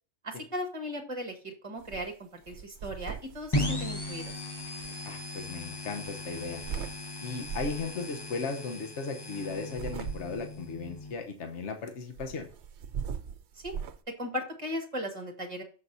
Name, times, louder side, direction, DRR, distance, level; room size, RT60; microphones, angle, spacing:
voice 1, 0.2-4.2 13.6-13.7 14.1-15.6, equal, 25° right, 2 dB, 1.6 m, -37 dB
sound 1, 1.8-2.1 2.4-4.9 6.1-7.0 7.4-7.9 9.5-10.6 12.2-14.0, right 7 dB, 70° right, 0.9 m, -40 dB
sound 2, 3.5-11.1, left 1 dB, 20° left, 0.9 m, -37 dB
voice 2, 5.1-6.6 7.2-12.5, left 4 dB, 75° left, 4 dB, 1.3 m, -36 dB
14.0 x 5.2 x 2.7 m, 0.39 s
omnidirectional pair, 1.2 m